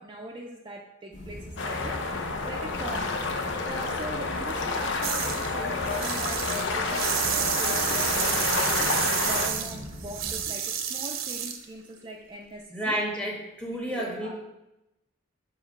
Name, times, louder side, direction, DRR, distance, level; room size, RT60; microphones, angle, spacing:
voice 1, 0.0-3.2 3.5-13.0 13.7-14.4, right 1 dB, 25° right, -1 dB, 0.4 m, -41 dB
sound 1, 1.1-10.4, left 1 dB, 40° left, 1.7 m, -40 dB
sound 2, 1.6-9.5, left 3 dB, 65° left, 0.7 m, -29 dB
sound 3, 5.0-5.5 5.8-11.6, right 9 dB, 85° right, 0.6 m, -29 dB
voice 2, 12.7-14.3, right 1 dB, 5° left, -1 dB, 1.1 m, -30 dB
7.1 x 3.0 x 5.2 m, 0.94 s
head